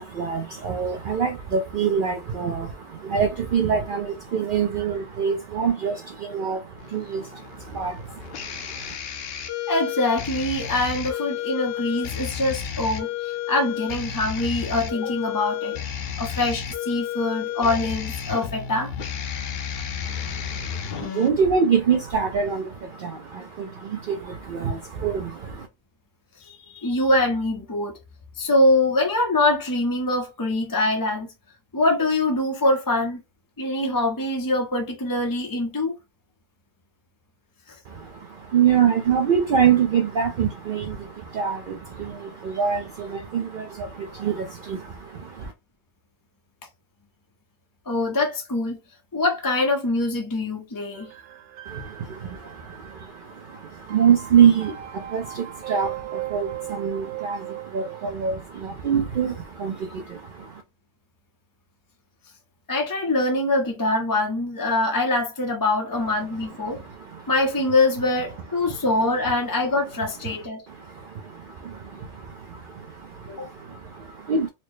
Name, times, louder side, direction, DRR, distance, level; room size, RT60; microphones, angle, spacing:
voice 1, 0.0-8.9 20.0-25.7 37.9-45.5 51.7-60.6 66.5-67.3 70.7-74.5, right 7 dB, 55° right, 0.6 m, -25 dB
sound 1, 6.8-21.3, left 9 dB, 65° left, 0.7 m, -32 dB
voice 2, 9.7-15.8 16.2-18.9 26.4-28.0 28.4-31.3 31.7-33.2 33.6-35.9 37.7-37.8 47.9-48.8 49.1-51.1 62.7-66.8 67.3-70.6 73.4-73.5, left 2 dB, 25° left, 0.4 m, -24 dB
sound 2, 50.9-58.1, right 15 dB, 80° right, 0.9 m, -38 dB
4.2 x 2.0 x 3.1 m
omnidirectional pair, 1.2 m